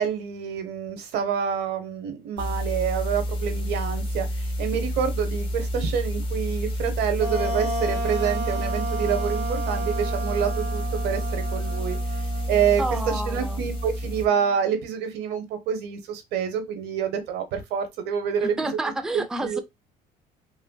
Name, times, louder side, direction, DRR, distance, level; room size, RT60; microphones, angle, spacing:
voice 1, 0.0-12.0 12.5-18.8 19.4-19.6, right 7 dB, 85° right, 0.8 m, -27 dB
sound 1, 2.4-14.3, equal, 30° left, 0.9 m, -29 dB
Wind instrument woodwind instrument, 7.2-14.6, right 3 dB, 40° right, 1.1 m, -33 dB
voice 2, 12.8-13.7 18.4-19.6, right 2 dB, 5° right, 0.3 m, -30 dB
3.1 x 2.4 x 2.2 m
cardioid pair, 110°, 17 cm